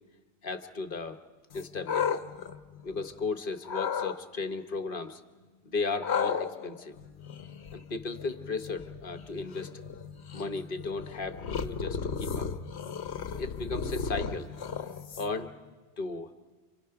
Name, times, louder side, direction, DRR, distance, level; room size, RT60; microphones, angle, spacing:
voice 1, 0.4-1.2 1.5-2.2 2.8-5.2 5.6-7.0 7.7-9.7 10.3-12.5 13.3-14.5 15.2-15.5 16.0-16.3, left 4 dB, 55° left, 9 dB, 1.4 m, -35 dB
sound 1, 1.5-3.2 3.6-4.2 6.0-15.5, left 6 dB, 75° left, 1.2 m, -35 dB
29.0 x 26.5 x 5.9 m, 1.3 s
omnidirectional pair, 1.1 m